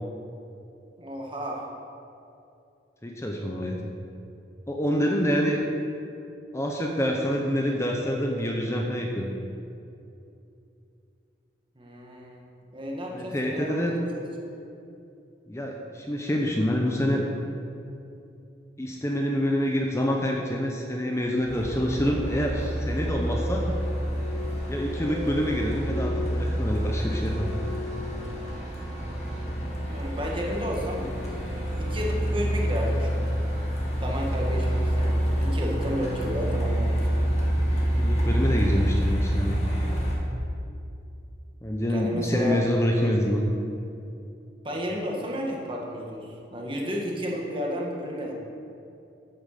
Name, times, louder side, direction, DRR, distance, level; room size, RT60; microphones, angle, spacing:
voice 1, 1.0-1.6 5.3-5.4 11.8-12.4 12.7-14.3 29.9-31.1 31.8-33.2 34.0-37.3 41.9-42.6 44.6-48.3, equal, 30° right, -1 dB, 1.8 m, -32 dB
voice 2, 3.0-3.8 4.7-5.6 6.5-9.3 13.1-13.9 15.5-17.3 18.8-23.7 24.7-27.5 37.7-39.6 41.6-43.5, equal, 15° left, 0 dB, 0.9 m, -26 dB
Truck, 21.5-40.2, equal, 40° left, 2.3 m, -27 dB
9.2 x 8.7 x 6.7 m, 2.7 s
head